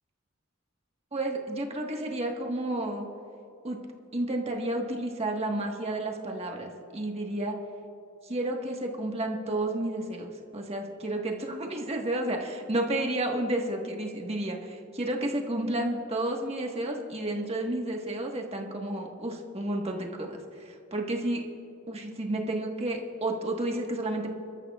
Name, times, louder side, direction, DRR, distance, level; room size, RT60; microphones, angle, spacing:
voice 1, 1.1-3.1 3.6-3.8 4.1-7.5 8.2-21.4 21.9-24.3, right 1 dB, 30° right, 1 dB, 1.4 m, -31 dB
25.5 x 13.5 x 2.4 m, 2.8 s
head